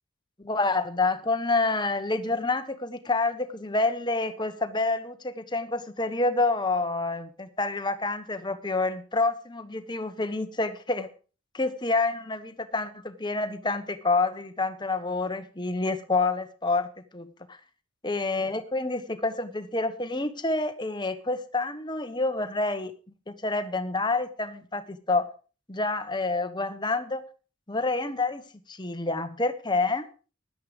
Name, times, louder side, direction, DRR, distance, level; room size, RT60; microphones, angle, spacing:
voice 1, 0.4-11.1 11.5-17.6 18.0-22.9 23.4-25.3 25.7-27.2 27.7-28.4 28.7-30.1, left 3 dB, 20° left, 9 dB, 1.2 m, -28 dB
13.5 x 10.5 x 5.2 m, 0.37 s
head